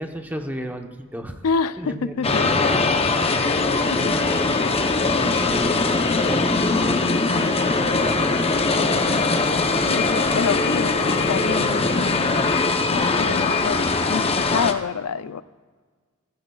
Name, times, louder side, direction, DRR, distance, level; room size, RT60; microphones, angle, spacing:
voice 1, 0.0-1.4 1.8-4.1 4.4-5.9 6.2-8.5 9.2-9.7, equal, 10° right, 4 dB, 0.9 m, -34 dB
voice 2, 1.4-2.7 3.4-3.7 9.8-12.5 12.9-15.4, left 5 dB, 80° left, 15 dB, 0.4 m, -27 dB
sound 1, 2.2-14.7, left 3 dB, 25° left, 0.7 m, -21 dB
16.5 x 15.0 x 2.4 m, 1.5 s
head